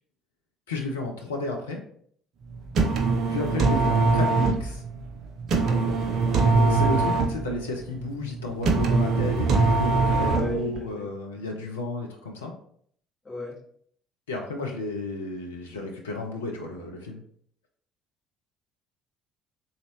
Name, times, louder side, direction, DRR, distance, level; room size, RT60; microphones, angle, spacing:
voice 1, 0.7-1.8 3.3-4.8 6.5-12.5 14.3-17.2, left 2 dB, 75° left, 1 dB, 0.4 m, -32 dB
sound 1, 2.5-10.8, right 3 dB, 50° right, 0.5 m, -23 dB
voice 2, 5.6-6.1 10.1-11.1 13.2-13.5, equal, 25° left, -10 dB, 1.4 m, -35 dB
3.9 x 2.4 x 2.9 m, 0.62 s
figure-of-eight pair, 55°, 0 cm